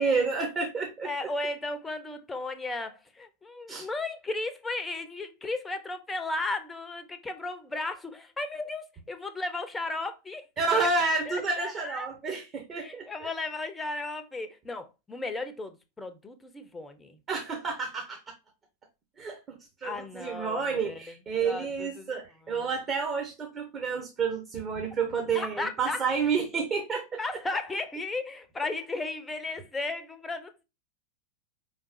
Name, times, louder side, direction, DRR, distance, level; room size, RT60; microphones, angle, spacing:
voice 1, 0.0-1.1 3.7-3.9 10.6-13.3 17.3-18.2 19.2-27.2, right 4 dB, 25° right, 1.2 m, -30 dB
voice 2, 1.0-10.4 11.3-12.1 12.8-17.2 19.8-21.0 21.4-22.1 22.5-22.7 25.3-26.0 27.2-30.6, left 2 dB, 10° left, 0.8 m, -35 dB
5.0 x 3.8 x 2.6 m
figure-of-eight pair, 90°, 0 cm